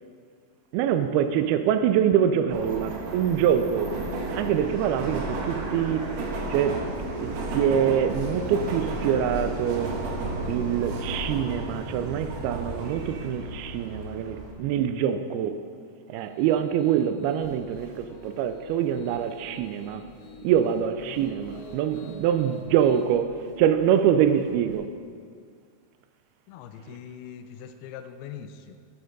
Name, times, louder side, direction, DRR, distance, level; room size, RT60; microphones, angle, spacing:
voice 1, 0.7-4.0 4.3-6.1 6.5-9.9 10.5-15.6 16.1-20.1 20.4-24.9, right 9 dB, 80° right, 2.4 m, -25 dB
Subway metro underground, 2.5-14.5, right 2 dB, 65° right, 1.8 m, -33 dB
Piano, 16.2-23.0, left 1 dB, 65° left, 2.1 m, -48 dB
sound 1, 17.4-24.7, right 1 dB, 45° left, 0.6 m, -53 dB
voice 2, 26.5-28.7, left 8 dB, 80° left, 2.5 m, -41 dB
11.0 x 9.5 x 5.2 m
omnidirectional pair, 4.7 m